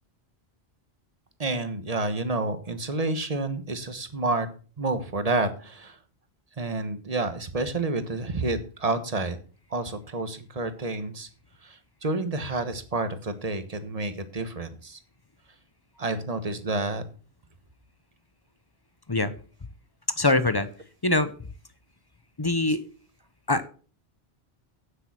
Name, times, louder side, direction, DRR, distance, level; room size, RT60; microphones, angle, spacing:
voice 1, 1.4-4.5 4.8-6.0 6.6-9.4 9.7-11.3 11.6-15.0 16.0-17.0, right 2 dB, 35° right, 10 dB, 1.2 m, -29 dB
voice 2, 20.2-20.7 21.0-21.3 22.4-22.8 23.5-23.7, left 2 dB, 25° left, 12 dB, 0.7 m, -23 dB
9.0 x 8.2 x 5.8 m, 0.40 s
omnidirectional pair, 1.1 m